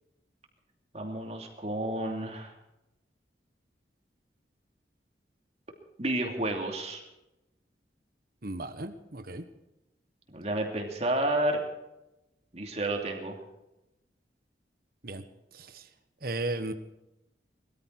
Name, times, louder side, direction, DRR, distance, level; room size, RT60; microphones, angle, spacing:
voice 1, 0.9-2.5 6.0-7.0 10.3-11.6 12.5-13.4, right 1 dB, 40° right, 2 dB, 2.8 m, -30 dB
voice 2, 8.4-9.4 15.0-15.2 15.5-15.8 16.2-16.7, right 2 dB, 55° right, 8 dB, 1.3 m, -35 dB
20.5 x 14.0 x 4.7 m, 0.91 s
head